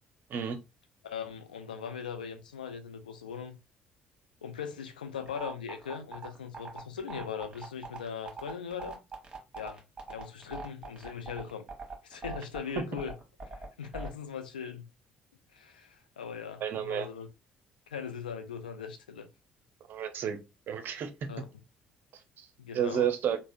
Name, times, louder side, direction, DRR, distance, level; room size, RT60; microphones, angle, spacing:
voice 1, 1.0-3.6 4.4-9.0 9.6-9.8 10.1-11.7 12.0-13.1 13.8-14.8 15.5-17.3 17.9-19.3 21.3-21.4 22.6-23.1, left 7 dB, 80° left, 0.4 m, -40 dB
sound 1, 5.2-14.1, right 4 dB, 20° right, 1.1 m, -41 dB
voice 2, 16.6-17.1 19.9-20.4 20.7-21.1 22.4-22.5 22.7-23.4, right 9 dB, 50° right, 0.5 m, -31 dB
3.4 x 2.0 x 2.5 m
figure-of-eight pair, 50°, 5 cm